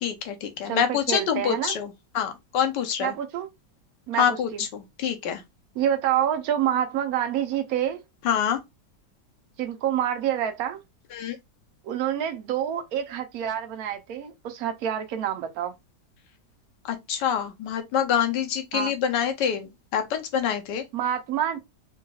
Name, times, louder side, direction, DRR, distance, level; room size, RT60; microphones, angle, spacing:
voice 1, 0.0-3.1 4.1-5.4 8.2-8.6 11.1-11.4 16.9-20.8, left 8 dB, 75° left, 1.4 m, -26 dB
voice 2, 0.6-1.7 3.0-3.5 4.1-4.7 5.7-8.0 9.6-10.8 11.8-15.7 18.7-18.9 20.9-21.6, right 10 dB, 65° right, 1.1 m, -27 dB
3.8 x 3.1 x 2.3 m
omnidirectional pair, 1.9 m